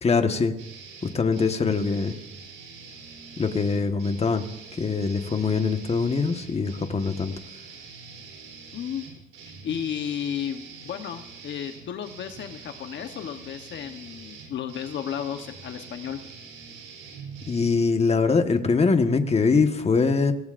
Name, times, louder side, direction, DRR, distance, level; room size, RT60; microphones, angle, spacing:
voice 1, 0.0-0.6 1.0-2.1 3.4-4.4 4.8-7.3 17.5-20.3, left 4 dB, 30° left, 6 dB, 1.4 m, -23 dB
sound 1, 0.6-17.7, right 5 dB, 85° right, 3.9 m, -44 dB
voice 2, 8.7-9.1 9.6-16.2, left 9 dB, 65° left, 7 dB, 1.1 m, -33 dB
25.0 x 18.5 x 2.6 m, 0.84 s
cardioid pair, 90°, 20 cm